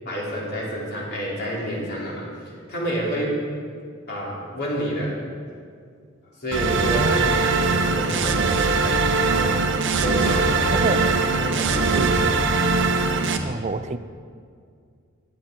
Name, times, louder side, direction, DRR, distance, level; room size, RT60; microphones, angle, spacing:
voice 1, 0.0-2.3 2.7-3.4 4.1-5.2 6.4-9.6 9.9-12.1, equal, 50° left, -4 dB, 3.4 m, -28 dB
sound 1, 6.5-13.4, right 4 dB, 60° right, 0.9 m, -21 dB
voice 2, 6.9-7.5 10.7-11.1 11.9-12.4 13.4-14.0, right 3 dB, 35° right, 12 dB, 0.5 m, -28 dB
22.5 x 7.7 x 4.5 m, 2.2 s
head